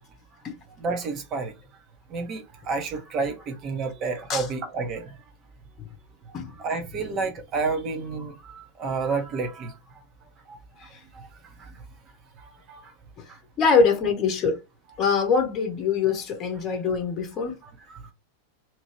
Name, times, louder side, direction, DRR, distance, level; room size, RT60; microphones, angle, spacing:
voice 1, 0.8-1.5 2.1-5.1 6.6-9.7 10.5-10.6 11.1-11.3 12.4-12.8 17.6-18.0, right 4 dB, 30° right, 1.0 m, -30 dB
voice 2, 13.6-14.6 15.0-17.6, left 5 dB, 30° left, 1.0 m, -23 dB
2.9 x 2.7 x 3.1 m
figure-of-eight pair, 90°, 0 cm